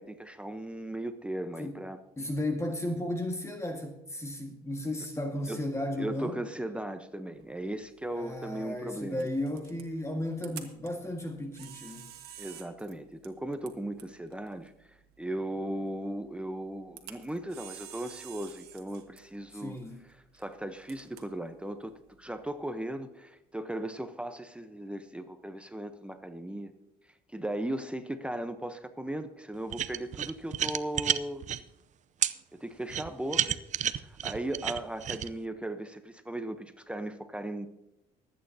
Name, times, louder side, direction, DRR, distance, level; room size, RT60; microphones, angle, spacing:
voice 1, 0.0-2.0 5.5-5.6 6.0-9.3 12.4-19.8 20.3-26.7 27.3-31.4 32.5-33.6 33.9-37.7, right 1 dB, 5° right, 9 dB, 0.8 m, -37 dB
voice 2, 2.2-6.4 8.1-12.2 19.5-20.1, left 1 dB, 15° left, 4 dB, 1.6 m, -34 dB
Camera, 7.4-22.8, right 11 dB, 75° right, 1.6 m, -52 dB
sound 1, 29.7-31.6 32.2-32.3 32.9-35.3, right 10 dB, 45° right, 0.6 m, -30 dB
24.5 x 9.1 x 2.8 m, 0.91 s
cardioid pair, 110°, 17 cm